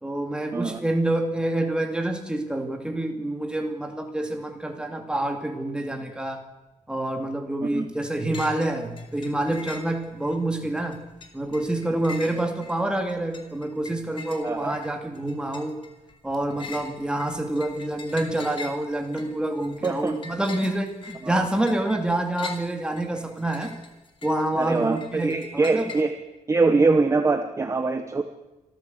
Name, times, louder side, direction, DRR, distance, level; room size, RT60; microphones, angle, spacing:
voice 1, 0.0-6.4 6.9-11.0 11.3-15.8 16.2-23.8 24.2-25.9, right 1 dB, 5° right, 4 dB, 2.3 m, -27 dB
sound 1, 8.3-8.7 9.0-10.4 10.8-26.0, left 4 dB, 45° left, 2.8 m, -43 dB
voice 2, 14.4-14.7 19.8-20.2 21.2-21.4 24.6-26.1 26.5-28.2, right 3 dB, 25° right, 7 dB, 1.1 m, -23 dB
25.5 x 13.5 x 8.1 m, 1.1 s
wide cardioid pair, 170°, 13 cm